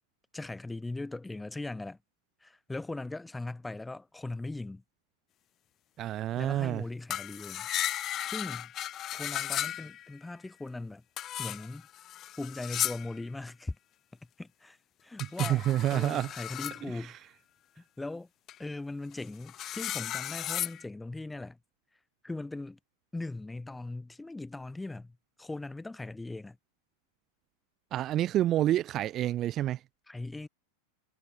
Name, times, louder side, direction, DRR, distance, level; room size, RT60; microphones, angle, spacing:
voice 1, 0.3-2.0 2.4-4.8 6.4-7.7 8.2-8.7 9.1-11.0 11.4-11.9 12.4-13.8 14.4-15.7 15.9-17.2 17.8-18.3 18.6-21.6 22.2-22.8 23.1-26.6 30.1-30.5, left 2 dB, 5° left, 5.3 m, -39 dB
voice 2, 6.0-6.8 15.4-16.3 27.9-29.8, right 13 dB, 30° right, 2.3 m, -28 dB
sound 1, 7.1-10.2 11.2-13.2 15.2-16.8 18.5-18.6 19.1-20.8, left 12 dB, 30° left, 1.5 m, -35 dB
figure-of-eight pair, 90°, 0 cm